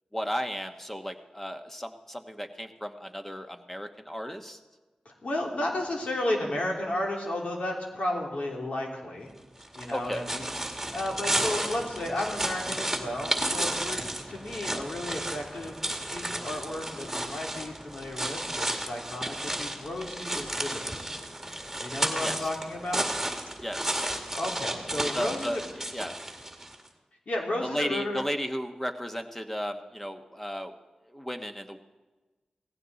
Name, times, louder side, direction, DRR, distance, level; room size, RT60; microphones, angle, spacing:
voice 1, 0.1-4.6 9.9-10.2 22.2-22.5 23.6-24.1 25.1-25.6 25.9-26.1 27.6-30.7 31.1-31.8, equal, 10° left, 6 dB, 1.2 m, -34 dB
voice 2, 5.0-9.3 9.8-14.0 14.3-21.0 21.8-23.0 24.3-25.6 27.3-28.2, left 1 dB, 70° left, -1 dB, 3.1 m, -33 dB
sound 1, 9.6-26.8, right 1 dB, 10° right, 2.1 m, -33 dB
17.5 x 15.5 x 4.1 m, 1.2 s
cardioid pair, 50°, 2 cm